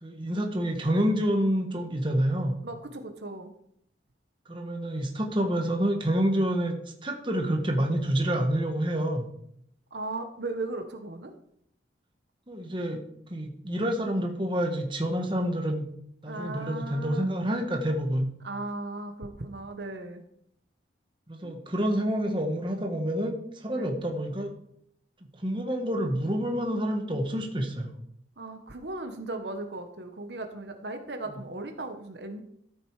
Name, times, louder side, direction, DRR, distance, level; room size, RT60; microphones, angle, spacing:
voice 1, 0.0-2.6 4.5-9.3 12.5-13.0 13.3-15.9 16.2-18.3 21.3-24.5 25.4-27.9 31.3-31.4, equal, 25° right, 3 dB, 1.5 m, -28 dB
voice 2, 2.6-3.5 9.9-11.3 16.3-17.2 18.4-20.2 21.4-21.6 23.7-23.9 28.4-32.4, right 2 dB, 65° right, 6 dB, 1.2 m, -37 dB
13.5 x 8.0 x 4.8 m, 0.70 s
head